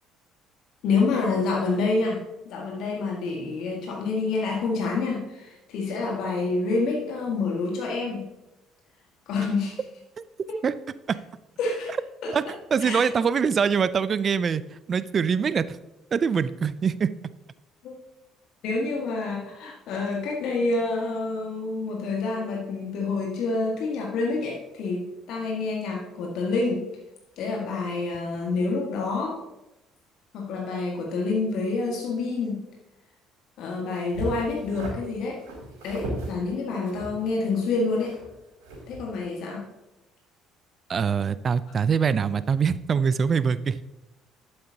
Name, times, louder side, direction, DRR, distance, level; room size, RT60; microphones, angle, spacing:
voice 1, 0.8-8.3 9.3-9.8 10.5-10.6 11.6-11.9 12.2-12.3 12.8-13.1 17.8-17.9 18.6-26.8 27.4-29.4 30.3-32.6 33.6-35.4 35.8-38.1 38.9-39.6, left 3 dB, 60° left, -1 dB, 1.7 m, -27 dB
voice 2, 12.7-14.6 14.9-15.8 16.1-17.1 40.9-43.8, right 6 dB, 40° right, 16 dB, 0.4 m, -23 dB
sound 1, 34.1-34.9 35.4-36.3 36.9-38.4 38.6-39.0, right 1 dB, 75° right, 3.2 m, -36 dB
11.5 x 8.7 x 2.8 m, 0.97 s
hypercardioid pair, 55°, 0 cm